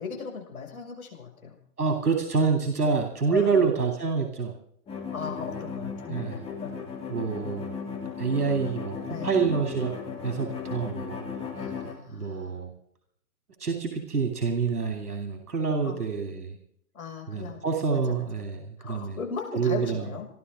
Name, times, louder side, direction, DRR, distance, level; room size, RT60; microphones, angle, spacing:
voice 1, 0.0-1.6 3.3-3.7 5.1-6.8 9.1-9.3 11.5-12.6 15.8-16.0 16.9-17.6 17.9-18.0 18.8-20.3, left 6 dB, 60° left, 1 dB, 6.5 m, -37 dB
voice 2, 1.8-4.5 6.1-6.4 7.1-7.7 8.2-9.9 10.2-11.2 12.1-12.7 13.6-16.6 17.3-19.2 19.5-20.1, right 5 dB, 65° right, 4 dB, 3.2 m, -27 dB
sound 1, 4.9-11.9, left 5 dB, 10° left, 3.1 m, -36 dB
28.5 x 12.5 x 3.7 m, 0.68 s
figure-of-eight pair, 130°, 47 cm